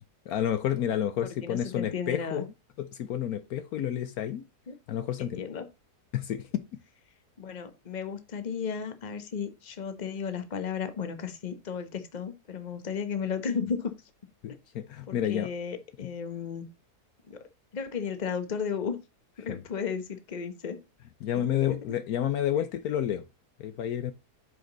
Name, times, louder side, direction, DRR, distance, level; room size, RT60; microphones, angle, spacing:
voice 1, 0.3-2.5 2.8-4.4 4.9-5.4 6.1-6.6 14.4-15.5 19.5-19.6 21.2-23.2 23.6-24.1, left 10 dB, 70° left, 1.1 m, -30 dB
voice 2, 1.4-2.5 4.7-4.8 5.2-5.7 7.4-13.9 15.1-16.7 17.3-17.4 17.7-19.0 19.4-20.8 21.3-21.8, left 6 dB, 30° left, 1.0 m, -34 dB
7.9 x 5.1 x 3.9 m
omnidirectional pair, 1.7 m